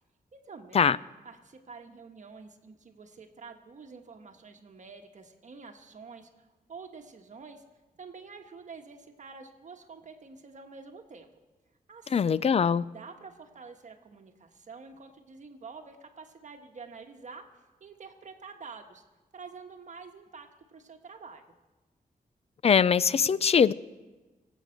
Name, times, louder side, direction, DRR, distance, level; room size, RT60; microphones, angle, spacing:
voice 1, 0.3-0.9 1.2-7.6 8.0-11.3 11.9-12.4 12.9-19.0 19.3-21.4, right 4 dB, 55° right, 1.3 m, -48 dB
voice 2, 12.1-12.8 22.6-23.7, left 7 dB, 45° left, 0.4 m, -22 dB
24.0 x 8.2 x 6.4 m
wide cardioid pair, 155°, 15 cm